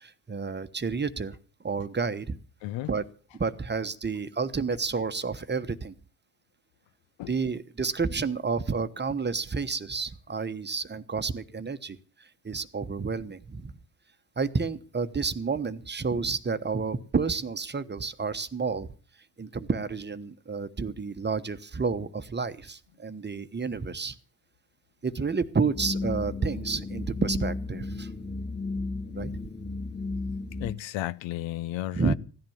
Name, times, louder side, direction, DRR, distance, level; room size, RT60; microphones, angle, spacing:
voice 1, 0.0-1.4 1.6-2.4 2.9-3.0 3.3-5.9 7.3-13.7 14.4-18.9 19.4-24.2 25.0-28.1 29.1-29.3 31.9-32.1, right 4 dB, 20° right, 1.1 m, -30 dB
voice 2, 2.6-2.9 7.2-7.3 30.6-32.1, left 15 dB, 70° left, 0.7 m, -33 dB
sound 1, 25.7-30.7, left 3 dB, 20° left, 2.9 m, -34 dB
16.0 x 10.5 x 7.2 m
supercardioid pair, 75°, 46 cm